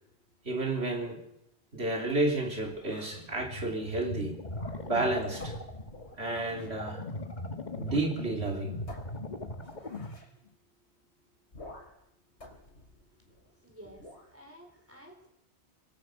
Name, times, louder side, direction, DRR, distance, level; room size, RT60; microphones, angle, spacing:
voice 1, 0.4-1.2 1.7-4.4 4.9-5.6 6.2-7.0 7.8-8.8, right 2 dB, 70° right, 3.8 m, -31 dB
sound 1, 2.1-3.3 4.4-5.0 5.4-6.8 7.8-8.1 8.4-8.5 8.9-10.3 11.5-12.0 12.4-13.5 14.0-14.3, left 1 dB, 85° left, 3.7 m, -51 dB
sound 2, 3.1-10.2, left 1 dB, 45° left, 1.7 m, -39 dB
voice 2, 13.1-15.3, equal, 10° right, 4.4 m, -53 dB
24.5 x 18.5 x 6.5 m
omnidirectional pair, 1.1 m